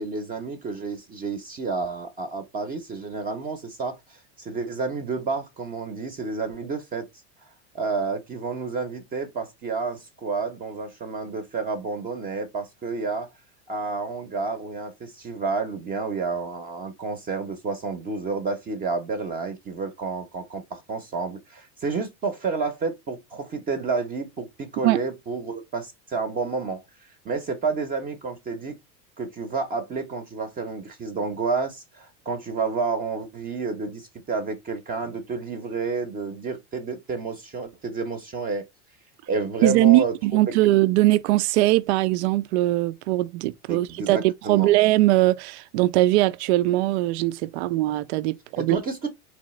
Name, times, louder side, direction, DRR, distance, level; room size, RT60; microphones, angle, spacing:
voice 1, 0.0-7.1 7.7-13.3 13.7-28.8 29.2-38.6 39.3-40.1 43.7-44.8 48.5-49.1, right 4 dB, 25° right, 0.7 m, -30 dB
voice 2, 39.6-48.8, right 17 dB, 70° right, 0.5 m, -21 dB
3.9 x 3.2 x 3.1 m
supercardioid pair, 140°, 35 cm